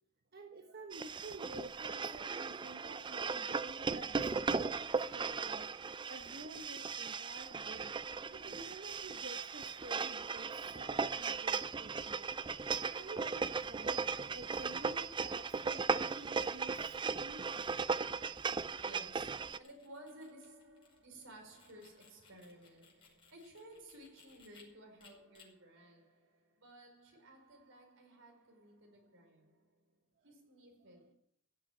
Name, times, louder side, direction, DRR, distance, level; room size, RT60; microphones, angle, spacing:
voice 1, 0.3-5.7 6.1-8.0 8.3-12.4 12.9-17.5, right 2 dB, 50° right, 1.2 m, -51 dB
sound 1, 0.9-19.6, right 5 dB, 25° right, 0.5 m, -37 dB
voice 2, 18.8-30.0 30.2-31.1, right 1 dB, 75° right, 5.1 m, -56 dB
sound 2, 19.1-24.6 25.0-25.5, left 5 dB, 25° left, 5.3 m, -64 dB
17.0 x 7.4 x 8.9 m
head